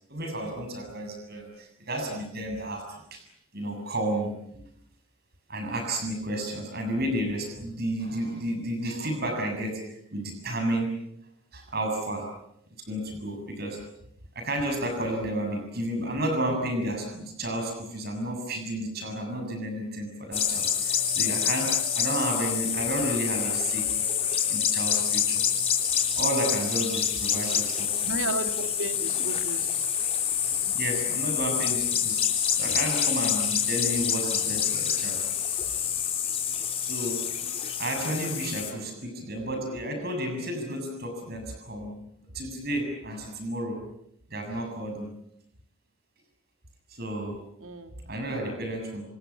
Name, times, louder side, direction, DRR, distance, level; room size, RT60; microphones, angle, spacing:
voice 1, 0.1-3.2 3.5-4.6 5.5-11.0 11.5-12.3 12.8-13.8 14.4-23.9 24.5-25.4 26.1-28.0 30.4-32.3 32.6-35.2 36.8-37.3 37.8-42.0 42.3-43.8 44.3-45.1 46.9-47.4 48.1-49.0, right 1 dB, 45° right, 4 dB, 7.2 m, -32 dB
sound 1, 20.3-38.7, left 8 dB, 30° left, 3.8 m, -27 dB
voice 2, 28.0-29.7 47.6-48.0, right 2 dB, 70° right, 6 dB, 3.0 m, -33 dB
28.5 x 26.5 x 7.2 m, 0.76 s
head